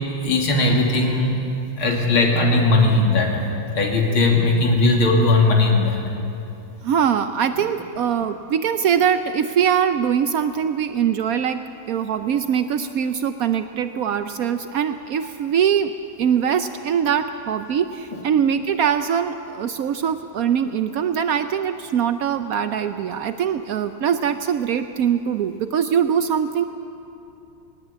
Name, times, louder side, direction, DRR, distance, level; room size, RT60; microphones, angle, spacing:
voice 1, 0.2-1.3 1.8-3.4 3.7-6.0 18.1-18.2, left 2 dB, 80° left, 0 dB, 3.5 m, -18 dB
voice 2, 6.8-11.6 11.9-15.9 16.2-26.6, right 8 dB, 85° right, 9 dB, 0.7 m, -22 dB
19.5 x 19.5 x 8.5 m, 2.7 s
omnidirectional pair, 2.3 m